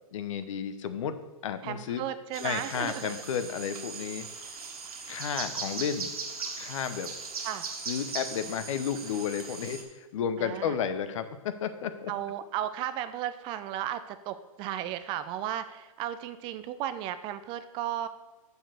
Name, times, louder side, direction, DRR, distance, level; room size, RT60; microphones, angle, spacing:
voice 1, 0.1-1.1 1.4-2.0 2.4-4.3 5.1-6.1 6.6-7.1 7.9-12.1, left 8 dB, 60° left, 11 dB, 0.9 m, -32 dB
voice 2, 1.6-3.2 7.4-7.6 10.4-10.8 12.1-18.1, right 11 dB, 25° right, 11 dB, 0.4 m, -35 dB
sound 1, 2.3-9.8, right 4 dB, 80° right, 1.7 m, -39 dB
6.9 x 6.0 x 6.4 m, 1.2 s
hypercardioid pair, 130°, 18 cm